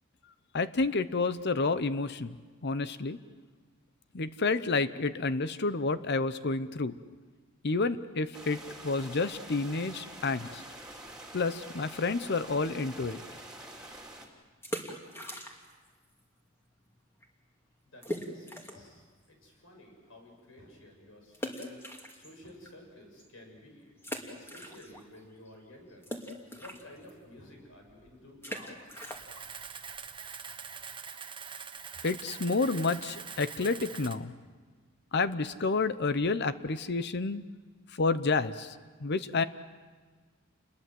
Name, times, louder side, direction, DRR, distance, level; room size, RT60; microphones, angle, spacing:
voice 1, 0.5-2.4 2.6-3.2 4.1-6.9 7.6-10.6 11.3-13.2 32.0-34.3 35.1-37.4 38.0-38.7 39.0-39.4, left 3 dB, 55° left, 13 dB, 0.8 m, -29 dB
sound 1, 8.3-14.3, right 1 dB, 5° right, 3.4 m, -46 dB
Rocks into water at Spfd Lake, 14.5-15.9 16.1-16.2 16.8-16.9 17.2-17.3 18.0-18.9 19.4-19.5 21.3-22.7 23.2-23.3 24.0-25.2 25.5-31.0, equal, 10° left, 2.6 m, -41 dB
voice 2, 17.8-21.8 22.1-23.9 24.2-26.0 26.5-28.8, left 1 dB, 75° left, 2 dB, 7.2 m, -53 dB
Camera, 28.9-34.2, right 6 dB, 25° right, 1.1 m, -44 dB
29.0 x 21.5 x 7.8 m, 1.4 s
head